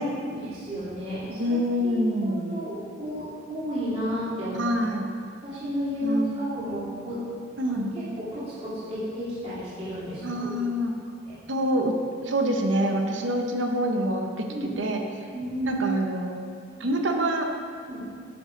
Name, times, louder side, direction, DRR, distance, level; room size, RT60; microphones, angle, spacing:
voice 1, 0.1-4.7 5.4-7.2 7.6-10.7 11.3-11.4 14.5-14.7 15.3-15.8 17.9-18.0, equal, 35° right, -11 dB, 2.5 m, -32 dB
voice 2, 1.3-2.6 4.5-5.1 6.0-6.4 7.6-7.9 10.2-10.9 11.5-11.9 12.2-14.5 14.8-15.0 15.7-16.4 16.8-17.5, equal, 70° right, 3 dB, 0.9 m, -26 dB
9.6 x 6.4 x 5.0 m, 2.2 s
head